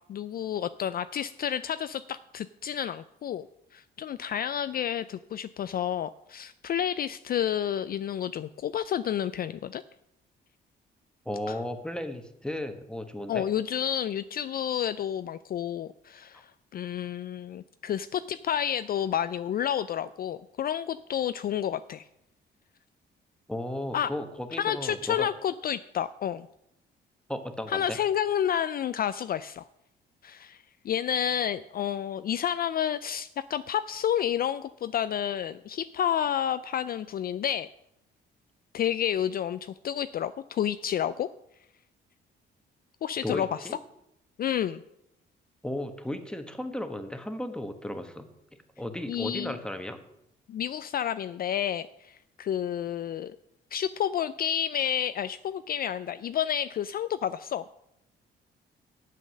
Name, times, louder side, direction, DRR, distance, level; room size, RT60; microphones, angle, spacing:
voice 1, 0.1-3.5 3.7-9.8 11.5-11.6 13.3-22.0 23.9-24.1 24.6-26.5 27.7-29.6 30.2-37.7 38.7-41.3 43.0-43.7 44.4-44.8 49.1-49.6 50.5-53.4 53.7-57.6, left 9 dB, 50° left, 13 dB, 0.4 m, -30 dB
voice 2, 11.2-13.4 23.5-25.3 27.3-28.0 43.2-43.8 45.6-48.3 48.8-50.0, left 1 dB, 5° left, 7 dB, 1.2 m, -35 dB
8.7 x 7.6 x 6.3 m, 0.81 s
cardioid pair, 90°, 20 cm